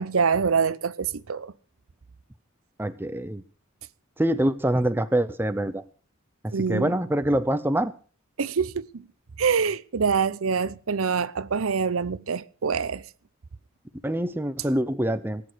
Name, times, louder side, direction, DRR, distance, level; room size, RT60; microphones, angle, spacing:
voice 1, 0.0-1.5 6.5-6.9 8.4-9.1 9.4-13.0, right 5 dB, 85° right, 0.7 m, -25 dB
voice 2, 2.8-3.4 4.2-5.8 6.7-7.9 14.0-15.4, right 1 dB, 10° right, 0.7 m, -25 dB
18.5 x 8.8 x 6.2 m
head